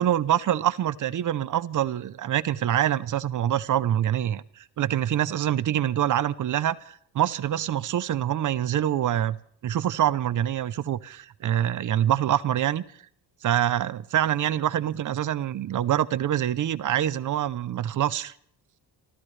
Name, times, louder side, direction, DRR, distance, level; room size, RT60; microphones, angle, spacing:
voice 1, 0.0-9.4 9.6-12.8 13.4-18.3, right 11 dB, 50° right, 0.7 m, -25 dB
28.0 x 14.0 x 3.3 m
cardioid pair, 175°, 41 cm